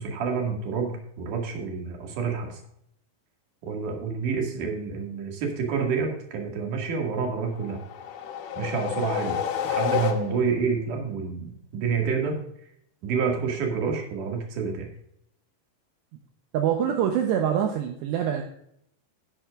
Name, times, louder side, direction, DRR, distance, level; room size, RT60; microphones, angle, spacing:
voice 1, 0.0-2.6 3.6-7.8 8.6-12.4 13.0-14.9, right 5 dB, 50° right, 1 dB, 3.2 m, -28 dB
sound 1, 7.6-10.7, left 8 dB, 70° left, 2.7 m, -29 dB
voice 2, 16.5-18.4, right 9 dB, 75° right, 3 dB, 3.0 m, -24 dB
12.5 x 10.5 x 2.5 m, 0.69 s
omnidirectional pair, 5.3 m